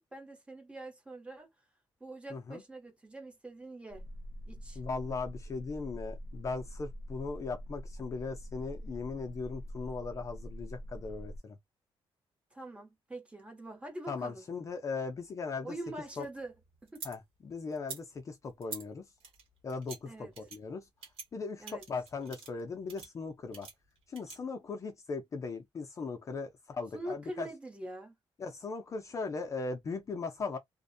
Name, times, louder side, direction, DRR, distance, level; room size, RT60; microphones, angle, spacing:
voice 1, 0.0-1.5 2.0-4.0 4.5-4.8 12.5-14.5 15.6-16.5 16.8-17.0 20.1-20.3 21.6-21.9 26.9-28.2, right 1 dB, 10° right, 0.8 m, -44 dB
voice 2, 2.3-2.6 4.8-11.6 14.1-15.7 16.2-16.3 17.0-17.2 17.4-19.1 19.6-20.8 21.3-23.7 24.1-27.5 28.4-30.6, left 4 dB, 35° left, 0.4 m, -38 dB
sound 1, 3.9-11.4, equal, 40° right, 0.3 m, -44 dB
sound 2, 15.8-17.2 17.7-18.0 18.6-18.8 19.2-20.0 20.4-20.6 21.0-21.3 21.7-22.6 22.9-23.1 23.5-24.4, right 5 dB, 80° right, 1.1 m, -46 dB
2.5 x 2.1 x 2.5 m
wide cardioid pair, 175°, 10 cm